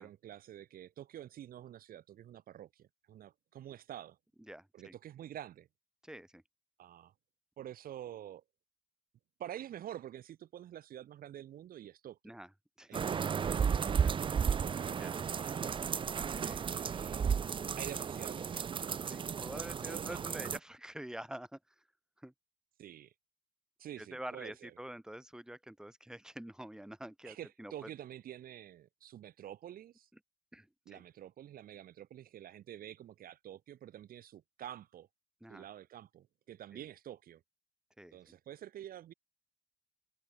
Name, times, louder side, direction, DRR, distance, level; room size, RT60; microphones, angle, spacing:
voice 1, 0.0-4.2 4.7-5.7 6.8-7.1 7.6-8.4 9.4-12.2 12.9-16.0 16.7-17.3 17.8-18.7 19.5-20.3 22.8-23.1 23.8-24.7 27.2-30.1 30.9-35.1 35.5-37.4 38.1-39.1, right 11 dB, 60° right, 2.1 m, -48 dB
voice 2, 4.5-4.9 6.0-6.4 12.2-12.5 12.8-13.0 13.9-14.1 14.9-15.3 16.4-16.7 19.1-21.6 22.2-22.3 24.0-27.9 30.5-31.0 35.4-35.6 36.7-36.8 38.0-38.2, right 1 dB, 5° right, 4.6 m, -47 dB
sound 1, 12.9-20.6, right 7 dB, 30° right, 0.6 m, -34 dB
cardioid pair, 110°, 17 cm